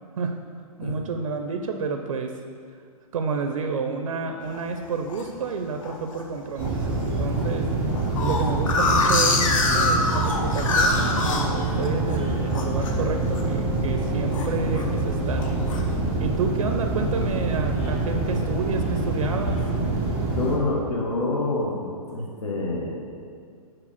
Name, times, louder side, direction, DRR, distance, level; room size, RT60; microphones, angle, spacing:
voice 1, 0.8-2.3 3.1-7.7 8.2-9.4 9.7-15.6 16.2-19.6, right 4 dB, 60° right, 5 dB, 0.5 m, -30 dB
sound 1, 4.5-5.3 5.8-6.2 6.6-6.7 6.9-7.0 7.4-12.2 12.5-12.9 13.3-13.6 13.9-14.9 15.3-15.8, left 3 dB, 55° left, 0.8 m, -24 dB
sound 2, 6.6-20.6, right 2 dB, 5° right, 0.3 m, -26 dB
sound 3, 10.9-21.1, left 4 dB, 30° left, 1.5 m, -43 dB
voice 2, 20.3-22.9, left 2 dB, 80° left, -4 dB, 1.4 m, -27 dB
4.9 x 4.8 x 5.6 m, 2.1 s
hypercardioid pair, 170°, 20 cm